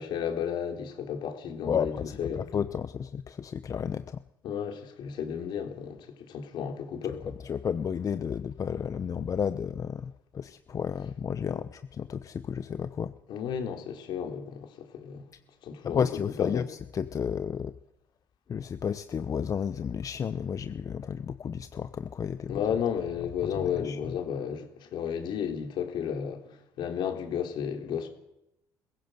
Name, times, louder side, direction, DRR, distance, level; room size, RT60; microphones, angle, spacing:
voice 1, 0.0-2.5 4.4-7.3 11.4-11.6 13.3-15.3 15.6-16.1 16.4-16.7 22.5-28.1, left 8 dB, 70° left, 3.6 m, -33 dB
voice 2, 2.4-4.2 7.5-13.1 15.8-17.7 18.5-22.6 23.8-24.0, left 7 dB, 40° left, 0.8 m, -32 dB
22.0 x 15.5 x 7.9 m
supercardioid pair, 80°, 8 cm